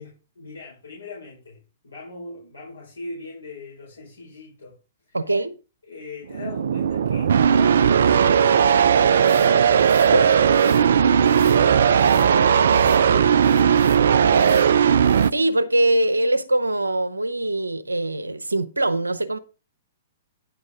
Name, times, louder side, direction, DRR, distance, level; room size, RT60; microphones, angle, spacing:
voice 1, 0.0-4.7 5.1-5.2 5.8-9.8 10.0-14.9, left 3 dB, 70° left, 4.4 m, -40 dB
voice 2, 5.1-5.6 10.1-10.3 14.3-14.4 15.3-19.4, right 1 dB, 80° right, 0.9 m, -22 dB
sound 1, 6.3-15.3, right 7 dB, 60° right, 0.4 m, -17 dB
sound 2, 9.1-10.1 10.5-10.8 11.2-11.6 12.0-12.3 12.7-13.0 13.4-14.0 14.3-14.7 15.0-15.3, left 7 dB, 50° left, 3.3 m, -45 dB
9.9 x 7.4 x 3.6 m
figure-of-eight pair, 110°, 0 cm